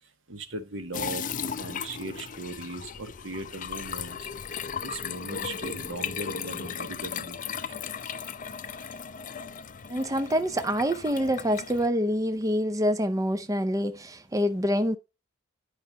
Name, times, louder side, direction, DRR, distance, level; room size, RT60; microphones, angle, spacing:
voice 1, 0.3-1.2 1.6-4.3 4.8-7.7, right 2 dB, 85° right, 1.6 m, -38 dB
sound 1, 0.9-11.9, left 7 dB, 45° left, 0.5 m, -36 dB
voice 2, 9.9-15.0, equal, 20° right, 0.6 m, -26 dB
10.5 x 5.6 x 4.1 m
head